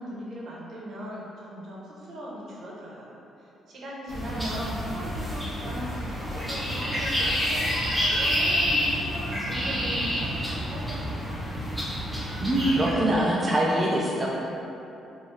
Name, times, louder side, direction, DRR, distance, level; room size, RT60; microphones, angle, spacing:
voice 1, 0.0-3.1 3.4-11.4, equal, 60° right, -5 dB, 0.8 m, -38 dB
sound 1, 4.1-12.9, equal, ahead, 1.0 m, -28 dB
voice 2, 12.4-14.3, right 1 dB, 20° right, -5 dB, 0.4 m, -23 dB
3.2 x 2.6 x 3.2 m, 2.9 s
cardioid pair, 90°, 0 cm